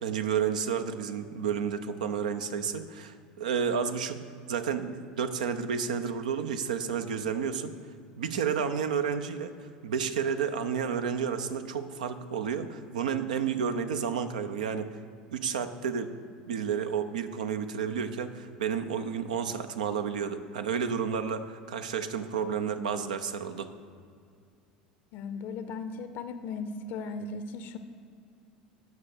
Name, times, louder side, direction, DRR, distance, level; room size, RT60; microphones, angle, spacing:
voice 1, 0.0-4.2 4.5-7.7 8.2-9.5 9.8-15.0 15.3-16.1 16.5-23.7, right 7 dB, 70° right, 9 dB, 0.6 m, -31 dB
voice 2, 25.1-27.8, left 4 dB, 50° left, 10 dB, 0.6 m, -37 dB
9.5 x 6.1 x 6.7 m, 2.3 s
figure-of-eight pair, 70°, 4 cm